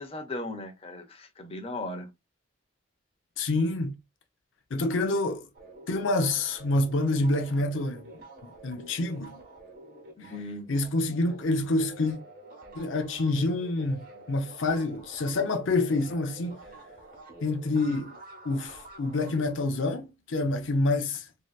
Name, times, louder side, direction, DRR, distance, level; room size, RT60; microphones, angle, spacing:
voice 1, 0.0-2.1 10.2-10.7, left 2 dB, 30° left, 0.7 m, -37 dB
voice 2, 3.4-3.9 4.7-5.5 5.9-8.1 8.4-9.4 10.7-12.2 12.8-16.6 17.4-18.2 18.4-21.3, left 2 dB, 85° left, 0.5 m, -27 dB
sound 1, 5.5-11.4 11.7-19.7, right 1 dB, 50° right, 1.1 m, -48 dB
3.1 x 2.7 x 2.3 m
head